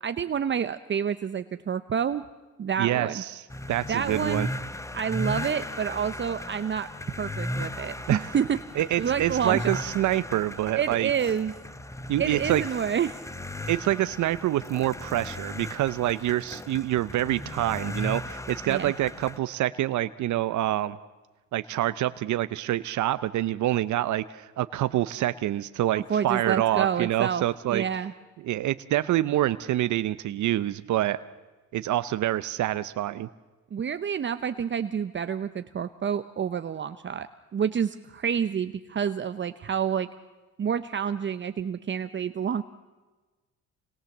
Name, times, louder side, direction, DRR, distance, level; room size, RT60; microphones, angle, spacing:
voice 1, 0.0-2.2 2.6-3.2 3.9-4.5 4.9-6.9 7.2-8.6 9.0-9.8 10.7-11.5 12.2-13.2 18.7-18.9 26.1-28.1 33.7-37.3 37.5-40.1 40.6-42.6, right 7 dB, 40° right, 11 dB, 0.8 m, -28 dB
voice 2, 2.8-4.5 8.1-8.3 8.8-11.1 12.1-12.6 13.7-21.0 21.5-27.8 28.4-31.2 31.7-33.3, right 14 dB, 75° right, 14 dB, 0.7 m, -26 dB
sound 1, 3.5-19.4, left 1 dB, 10° left, 1.0 m, -36 dB
27.0 x 21.0 x 7.2 m, 1.3 s
cardioid pair, 90°, 30 cm